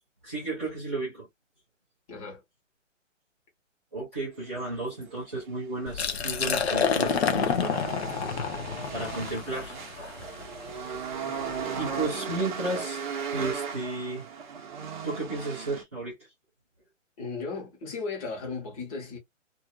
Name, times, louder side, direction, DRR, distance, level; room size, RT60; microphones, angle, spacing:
voice 1, 0.2-1.3 3.9-7.9 8.9-10.2 11.8-14.3 15.0-16.1, right 2 dB, 10° right, 0.4 m, -33 dB
voice 2, 2.1-2.4 17.2-19.2, left 4 dB, 30° left, 1.3 m, -36 dB
sound 1, 4.4-15.8, right 6 dB, 40° right, 0.8 m, -37 dB
Liquid, 5.9-11.6, left 6 dB, 55° left, 0.7 m, -29 dB
2.6 x 2.4 x 2.3 m
hypercardioid pair, 145°, 38 cm